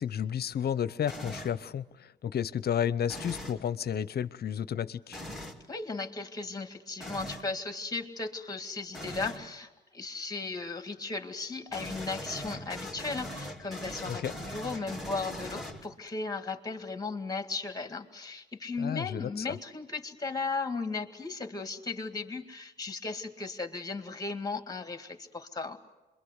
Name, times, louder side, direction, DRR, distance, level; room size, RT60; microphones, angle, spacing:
voice 1, 0.0-5.2 14.1-14.3 18.8-19.6, left 9 dB, 55° left, 0.8 m, -32 dB
sound 1, 1.1-1.6 3.1-3.6 5.1-5.6 7.0-7.5 8.9-9.4 11.7-16.1, left 1 dB, ahead, 2.5 m, -40 dB
voice 2, 5.7-25.8, left 3 dB, 20° left, 2.1 m, -36 dB
27.0 x 23.0 x 8.1 m
cardioid pair, 95°, 20 cm